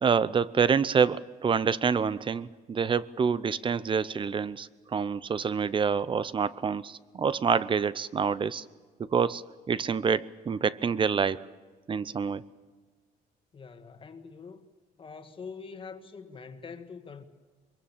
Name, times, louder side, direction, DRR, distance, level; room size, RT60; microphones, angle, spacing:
voice 1, 0.0-8.6 9.1-11.5 11.9-12.4, right 6 dB, 30° right, 0.7 m, -27 dB
voice 2, 13.5-14.6 15.0-17.2, left 5 dB, 30° left, 1.7 m, -44 dB
24.0 x 22.5 x 7.3 m
cardioid pair, 110°, 17 cm